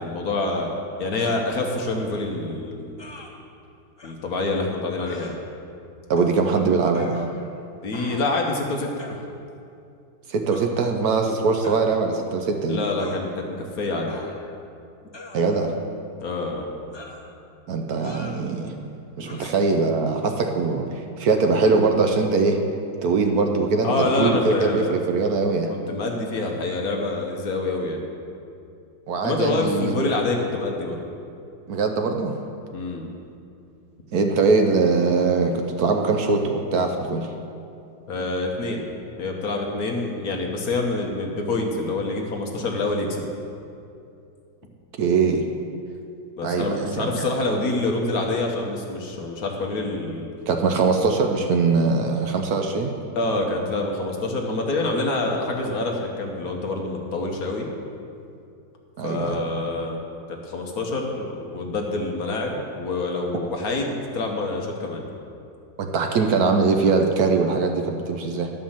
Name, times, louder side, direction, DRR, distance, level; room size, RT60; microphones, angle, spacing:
voice 1, 0.0-3.0 4.0-5.4 7.8-8.9 12.7-14.1 16.2-16.7 19.3-19.5 23.8-25.0 25.7-28.0 29.2-31.0 32.7-33.1 38.1-38.9 39.2-43.3 46.4-50.3 53.1-57.7 59.0-60.0 60.3-65.0, left 2 dB, 60° left, 1 dB, 1.5 m, -26 dB
sound 1, 1.2-1.5 3.0-3.3 4.0-4.1 5.0-5.3 6.2-6.4 6.9-7.6 7.9-8.4 9.0-9.2 10.5-10.7 11.6-11.9 13.0-13.2 14.1-14.6 15.1-15.8 16.9-17.3 18.0-18.4 19.2-19.4, left 2 dB, 30° left, 0.4 m, -42 dB
voice 2, 6.1-7.2 10.3-12.8 15.3-15.7 17.7-18.7 19.2-22.6 23.0-25.7 29.1-30.0 31.7-32.4 34.1-37.3 45.0-45.4 46.4-47.3 50.5-52.9 59.0-59.4 65.8-68.5, right 4 dB, 65° right, 4 dB, 1.1 m, -22 dB
11.5 x 5.3 x 7.3 m, 2.5 s
omnidirectional pair, 1.9 m